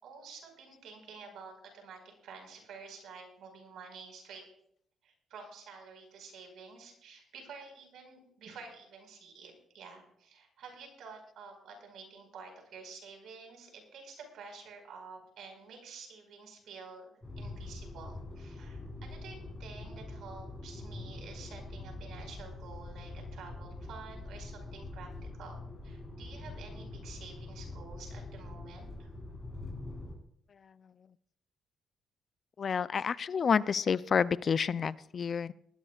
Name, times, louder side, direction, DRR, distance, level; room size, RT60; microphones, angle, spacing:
voice 1, 0.0-4.4 5.0-17.1 17.4-29.1, right 5 dB, 75° right, 3 dB, 4.9 m, -50 dB
sound 1, 17.2-30.1, left 2 dB, 20° left, 7.1 m, -44 dB
voice 2, 32.6-35.5, left 6 dB, 45° left, 18 dB, 0.4 m, -29 dB
19.5 x 15.0 x 2.4 m, 0.71 s
cardioid pair, 90°, 0 cm